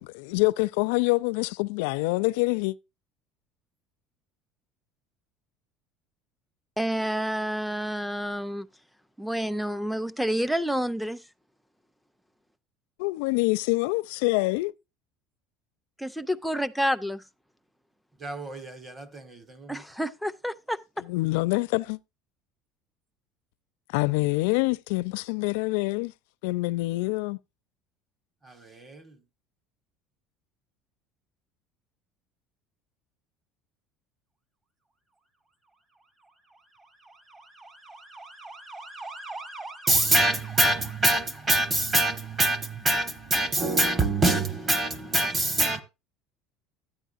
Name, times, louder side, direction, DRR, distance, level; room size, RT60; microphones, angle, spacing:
voice 1, 0.0-2.7 13.0-14.7 21.0-22.0 23.9-26.1 26.4-27.4, left 23 dB, 80° left, 0.4 m, -26 dB
voice 2, 6.8-8.7 9.2-11.2 16.0-17.2 19.7-20.8, equal, ahead, 0.5 m, -29 dB
voice 3, 18.2-19.8 28.5-29.0 37.4-45.8, right 2 dB, 20° right, 1.3 m, -26 dB
13.0 x 9.8 x 2.5 m
cardioid pair, 175°, 0 cm